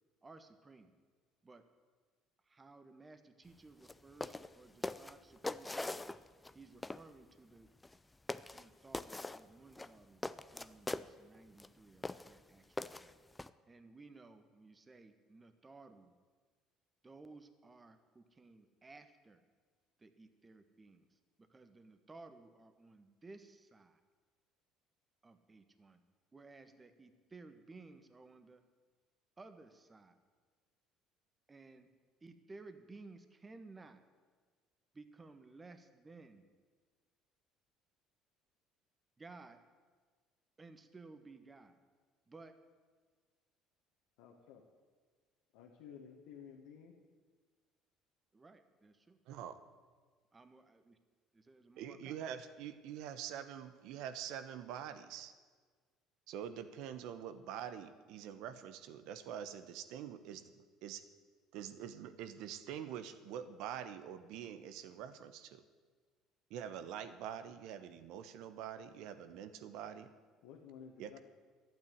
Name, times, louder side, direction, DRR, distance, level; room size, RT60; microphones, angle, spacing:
voice 1, 0.2-0.9 1.4-1.7 2.4-6.0 6.5-7.7 8.5-10.2 10.5-13.2 13.7-16.1 17.0-19.4 20.0-24.0 25.2-26.0 26.3-28.6 29.4-30.2 31.5-31.9 32.2-34.0 34.9-36.5 39.2-39.6 40.6-41.7 42.3-42.6 48.3-49.2 50.3-51.0 51.3-52.2, right 3 dB, 20° right, 9 dB, 1.3 m, -57 dB
sound 1, 3.8-3.9 4.2-4.5 4.8-6.5 6.8-7.0 7.8-8.0 8.3-8.6 8.9-9.4 9.7-11.1 11.6-11.7 12.0-12.3 12.8-13.5, left 2 dB, 15° left, 0.5 m, -41 dB
voice 2, 44.2-44.6 45.5-47.0 70.4-71.2, left 7 dB, 85° left, -1 dB, 1.5 m, -54 dB
voice 3, 49.3-49.6 51.8-55.3 56.3-60.5 60.8-61.0 61.5-65.6 66.5-70.1 71.0-71.2, right 9 dB, 75° right, 11 dB, 1.0 m, -45 dB
11.5 x 9.2 x 9.4 m, 1.5 s
supercardioid pair, 95°, 0 cm